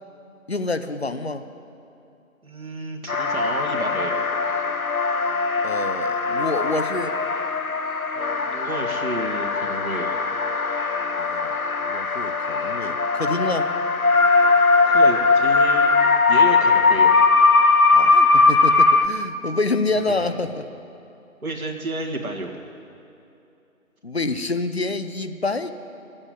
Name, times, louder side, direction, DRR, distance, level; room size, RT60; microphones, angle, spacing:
voice 1, 0.5-1.4 5.6-7.1 11.2-13.7 17.9-20.7 24.0-25.7, left 3 dB, 50° left, 10 dB, 0.7 m, -27 dB
voice 2, 2.4-4.2 8.1-10.1 14.9-15.9 16.3-17.1 20.1-20.3 21.4-22.5, right 2 dB, 85° right, 0 dB, 2.1 m, -31 dB
sound 1, 3.1-19.1, left 4 dB, 90° left, 1.0 m, -20 dB
13.0 x 8.7 x 9.4 m, 2.7 s
figure-of-eight pair, 170°, 42 cm